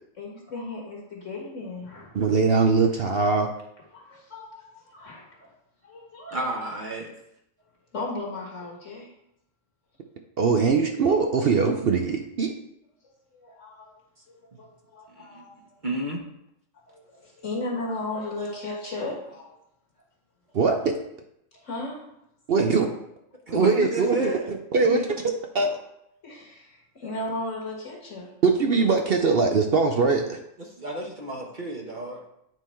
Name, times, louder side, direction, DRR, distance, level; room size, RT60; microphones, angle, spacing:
voice 1, 0.2-2.1 3.9-5.5 5.8-6.5 7.9-9.1 13.0-13.9 14.4-15.6 16.9-19.6 21.5-22.0 24.8-25.0 26.2-28.3, left 2 dB, 65° left, -2 dB, 1.9 m, -35 dB
voice 2, 2.1-3.5 10.4-12.5 20.5-21.0 22.5-22.9 23.5-24.4 24.7-25.0 25.5-25.8 28.4-30.4, right 4 dB, 55° right, 4 dB, 0.7 m, -21 dB
voice 3, 6.3-7.1 15.2-15.5 15.8-16.2 23.5-24.5 30.8-32.2, right 1 dB, 40° right, -1 dB, 1.1 m, -31 dB
9.1 x 3.7 x 4.3 m, 0.78 s
omnidirectional pair, 1.4 m